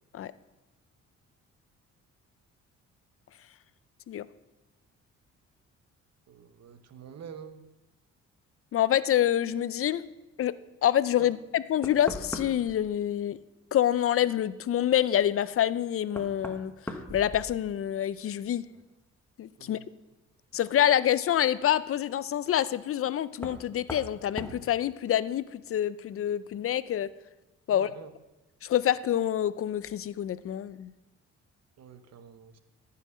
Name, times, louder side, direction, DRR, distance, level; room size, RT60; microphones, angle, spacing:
voice 1, 6.3-7.6 11.2-11.4 19.6-19.9 27.7-28.1 31.8-32.6, right 7 dB, 60° right, 10 dB, 1.0 m, -46 dB
voice 2, 8.7-10.0 10.4-10.5 10.8-13.4 13.7-16.7 17.1-18.6 19.4-19.8 20.5-27.1 27.7-27.9 28.6-30.9, left 11 dB, 50° left, 17 dB, 0.4 m, -27 dB
Knock, 11.8-12.8 15.2-15.3 16.1-17.9 18.3-18.8 20.5-20.6 23.4-23.6 23.9-24.1 24.4-24.6, left 1 dB, 5° left, 1.2 m, -39 dB
13.5 x 5.7 x 6.2 m, 1.0 s
cardioid pair, 90°, 30 cm